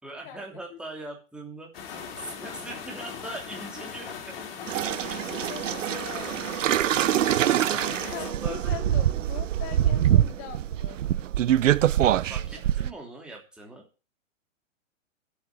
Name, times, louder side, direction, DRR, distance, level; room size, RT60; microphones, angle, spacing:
voice 1, 0.0-1.9 2.2-4.5 7.4-8.8 11.9-13.8, right 1 dB, ahead, -1 dB, 3.0 m, -41 dB
sound 1, 1.7-8.3, left 7 dB, 45° left, 4.1 m, -39 dB
sound 2, 4.7-12.9, right 12 dB, 70° right, 0.8 m, -24 dB
voice 2, 5.0-6.3 8.1-11.0, left 10 dB, 30° left, 4 dB, 3.1 m, -41 dB
10.5 x 8.4 x 8.3 m, 0.33 s
hypercardioid pair, 155°, 40 cm